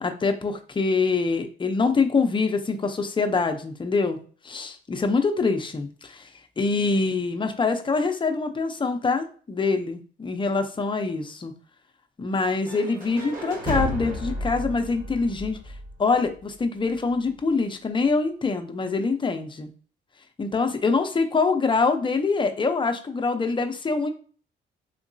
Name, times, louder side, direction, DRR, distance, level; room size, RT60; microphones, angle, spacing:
voice 1, 0.0-4.2 4.4-6.3 6.6-11.5 12.2-15.6 16.0-19.7 20.4-24.1, left 4 dB, 25° left, 5 dB, 0.6 m, -24 dB
sound 1, 12.7-16.6, left 1 dB, 40° right, 1.6 m, -32 dB
3.7 x 2.9 x 2.6 m, 0.41 s
cardioid pair, 90°, 20 cm